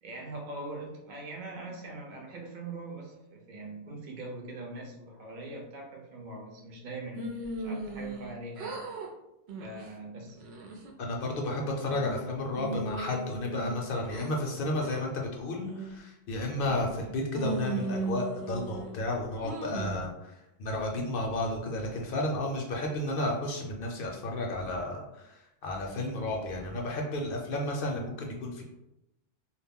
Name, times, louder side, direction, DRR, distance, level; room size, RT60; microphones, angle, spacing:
voice 1, 0.0-8.8 9.6-10.4, right 2 dB, 50° right, 0 dB, 0.7 m, -42 dB
sound 1, 7.2-8.3 8.6-9.1 9.5-9.8 10.3-10.9 11.4-12.2 12.6-14.3 14.8-15.0 15.5-16.0 16.6-17.0 17.3-18.9 19.4-20.0, right 3 dB, 85° right, 0.8 m, -37 dB
voice 2, 11.0-28.6, left 1 dB, 65° left, 0 dB, 0.7 m, -32 dB
2.2 x 2.0 x 3.5 m, 0.90 s
omnidirectional pair, 1.1 m